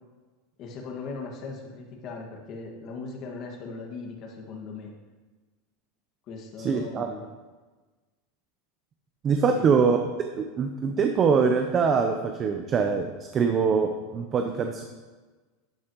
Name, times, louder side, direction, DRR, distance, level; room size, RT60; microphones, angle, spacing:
voice 1, 0.6-4.9 6.3-7.2 9.5-10.1, left 4 dB, 40° left, 1 dB, 1.8 m, -39 dB
voice 2, 6.6-7.1 9.2-10.0 10.4-13.1 13.3-14.8, right 5 dB, 30° right, 4 dB, 0.7 m, -23 dB
12.0 x 8.7 x 3.0 m, 1.3 s
supercardioid pair, 135°, 0 cm